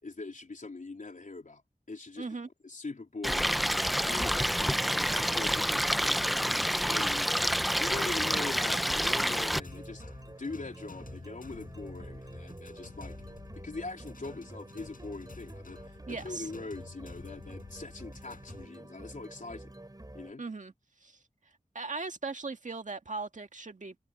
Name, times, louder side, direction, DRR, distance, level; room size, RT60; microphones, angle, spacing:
voice 1, 0.0-1.6 1.9-2.3 2.6-3.6 4.0-7.3 7.8-13.2 13.6-19.7 20.1-20.5, left 3 dB, 65° left, 3.8 m, -42 dB
voice 2, 2.2-2.5 16.1-16.5 20.4-20.7 21.0-21.2 21.7-24.0, right 3 dB, 60° right, 1.9 m, -38 dB
Stream, 3.2-9.6, equal, ahead, 0.7 m, -28 dB
sound 1, 4.5-20.3, right 1 dB, 25° right, 4.4 m, -48 dB
sound 2, 7.4-18.7, left 4 dB, 90° left, 5.2 m, -50 dB
wide cardioid pair, 55°, 14 cm